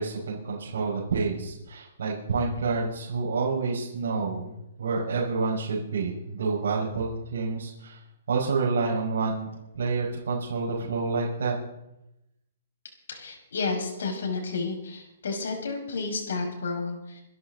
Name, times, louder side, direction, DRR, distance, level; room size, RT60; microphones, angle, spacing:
voice 1, 0.0-4.5 4.8-8.0 8.3-11.5, right 4 dB, 75° right, -4 dB, 5.5 m, -28 dB
voice 2, 13.1-17.2, left 4 dB, 85° left, 3 dB, 5.9 m, -31 dB
26.5 x 11.5 x 4.0 m, 0.88 s
hypercardioid pair, 175°, 0 cm